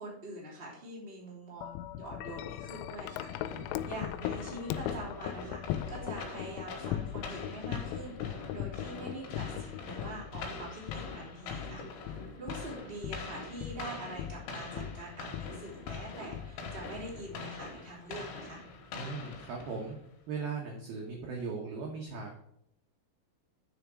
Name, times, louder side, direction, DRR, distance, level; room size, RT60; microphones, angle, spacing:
voice 1, 0.0-18.6, right 1 dB, 15° right, -5 dB, 2.3 m, -44 dB
Wind chime, 1.6-17.8, left 12 dB, 90° left, 3.3 m, -40 dB
sound 1, 3.3-20.1, left 3 dB, 70° left, 3.6 m, -44 dB
voice 2, 18.9-20.0 20.3-22.4, right 4 dB, 70° right, -1 dB, 2.3 m, -38 dB
9.6 x 5.0 x 4.9 m, 0.74 s
omnidirectional pair, 5.9 m